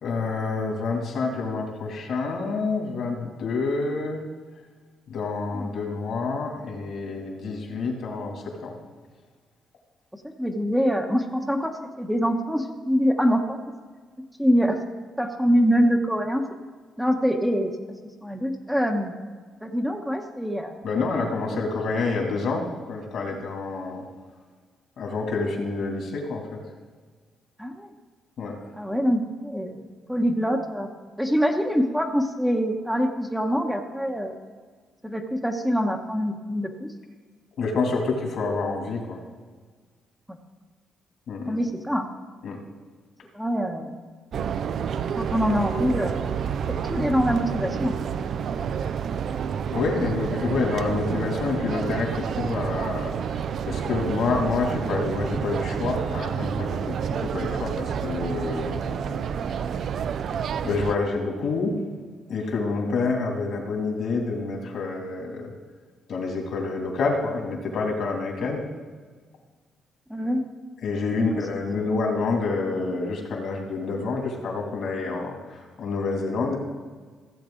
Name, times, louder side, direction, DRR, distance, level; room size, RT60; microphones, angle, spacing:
voice 1, 0.0-4.2 5.1-8.7 20.8-24.0 25.0-26.6 28.4-28.6 37.6-39.2 41.3-41.6 42.4-42.6 49.7-53.1 53.7-59.2 59.5-59.6 60.6-61.8 62.3-65.5 66.1-68.6 70.8-76.6, left 4 dB, 65° left, 1 dB, 2.5 m, -28 dB
voice 2, 10.4-13.6 14.4-14.8 15.2-16.4 17.0-17.7 18.2-19.1 19.6-20.8 21.2-21.6 27.6-27.9 28.8-29.8 30.1-30.9 31.2-34.4 35.0-36.9 40.3-40.4 41.5-42.1 43.3-43.9 45.2-46.3 46.7-48.0 68.4-68.5 70.1-70.5 71.2-71.6, equal, ahead, 3 dB, 0.9 m, -24 dB
sound 1, 44.3-61.0, right 7 dB, 60° right, 0.4 m, -29 dB
15.5 x 7.7 x 3.8 m, 1.5 s
cardioid pair, 90°, 0 cm